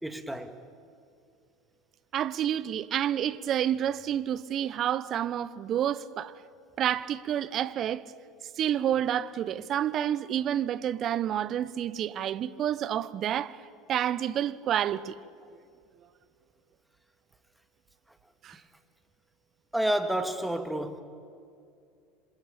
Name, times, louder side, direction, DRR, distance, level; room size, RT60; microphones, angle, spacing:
voice 1, 0.0-0.6 18.5-18.6 19.7-21.0, right 1 dB, 5° right, 2.3 m, -30 dB
voice 2, 2.1-6.3 6.8-8.0 8.6-13.6 13.9-15.1 18.4-18.6, right 10 dB, 45° right, 1.0 m, -29 dB
27.0 x 26.5 x 7.1 m
figure-of-eight pair, 75°, 0 cm